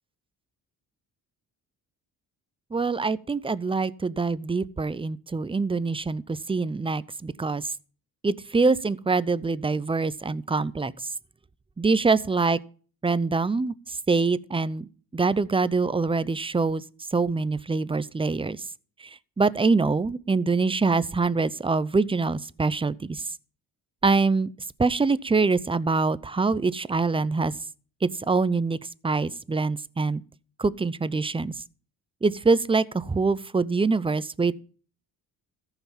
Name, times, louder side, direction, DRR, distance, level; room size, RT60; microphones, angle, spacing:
voice 1, 2.7-7.6 8.2-10.9 11.8-12.6 13.0-14.9 15.1-16.8 17.1-18.6 19.4-23.2 24.0-24.5 24.8-27.5 28.0-28.8 29.0-30.2 30.6-31.5 32.2-34.5, right 4 dB, 15° right, 0.6 m, -24 dB
14.0 x 6.0 x 7.1 m
cardioid pair, 85°, 38 cm